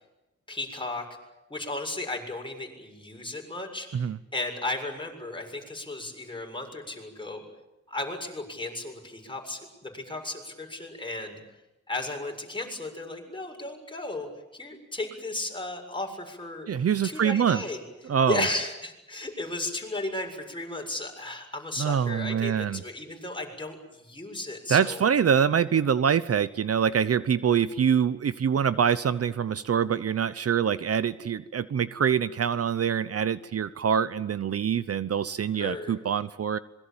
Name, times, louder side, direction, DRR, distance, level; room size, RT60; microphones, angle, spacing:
voice 1, 0.5-1.0 1.5-7.4 7.9-11.4 11.9-16.7 17.0-25.0 35.5-35.9, left 2 dB, 15° left, 2 dB, 7.2 m, -35 dB
voice 2, 16.7-17.6 18.0-18.5 21.8-22.8 24.7-36.6, right 7 dB, 55° right, 15 dB, 0.9 m, -25 dB
26.5 x 23.0 x 8.9 m, 0.96 s
cardioid pair, 95°, 30 cm